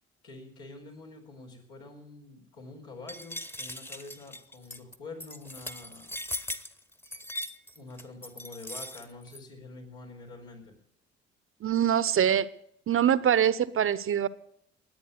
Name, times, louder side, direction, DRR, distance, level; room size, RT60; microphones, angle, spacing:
voice 1, 0.2-6.1 7.7-10.8, left 3 dB, 80° left, -1 dB, 4.5 m, -46 dB
sound 1, 3.1-9.4, left 1 dB, 5° left, 1.1 m, -39 dB
voice 2, 11.6-12.5 12.9-14.3, right 9 dB, 40° right, 17 dB, 0.8 m, -24 dB
21.0 x 8.7 x 6.7 m, 0.70 s
hypercardioid pair, 55°, 32 cm